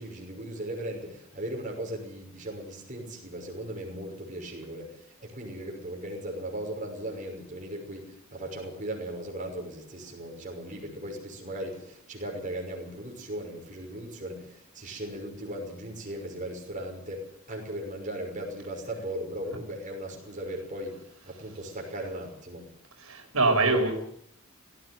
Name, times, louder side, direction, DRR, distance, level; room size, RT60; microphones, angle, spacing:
voice 1, 0.0-22.7, right 1 dB, 35° right, 0 dB, 6.0 m, -37 dB
voice 2, 23.0-24.0, right 3 dB, 85° right, 2 dB, 5.3 m, -24 dB
18.5 x 15.5 x 9.4 m, 0.66 s
head